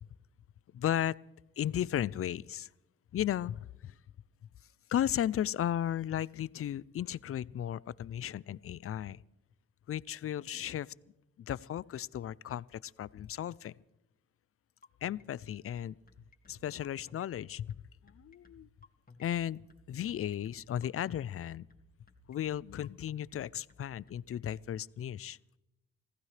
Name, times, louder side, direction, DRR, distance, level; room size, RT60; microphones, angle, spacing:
voice 1, 0.7-1.1 1.6-2.7 3.1-3.9 4.9-9.2 9.9-10.9 11.5-13.7 15.0-16.0 16.5-17.8 18.0-18.7 19.2-19.6 19.9-21.6 22.3-25.4, left 11 dB, 50° left, 22 dB, 0.5 m, -35 dB
sound 1, 14.8-24.6, left 3 dB, 30° left, 2.2 m, -59 dB
25.0 x 15.5 x 3.3 m, 0.96 s
cardioid pair, 60°, 29 cm